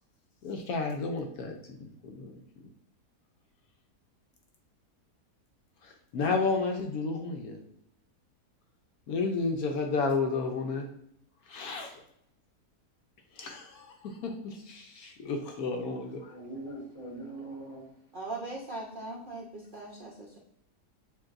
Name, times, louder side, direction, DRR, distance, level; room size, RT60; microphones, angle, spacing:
voice 1, 0.4-2.4 5.8-7.6 9.1-10.9 11.5-12.0 13.3-16.2, left 4 dB, 70° left, 3 dB, 1.0 m, -32 dB
voice 2, 15.6-17.9, right 1 dB, 50° left, -1 dB, 1.4 m, -43 dB
voice 3, 18.1-20.4, right 2 dB, 50° right, -4 dB, 0.6 m, -40 dB
7.3 x 2.6 x 2.5 m, 0.73 s
omnidirectional pair, 1.7 m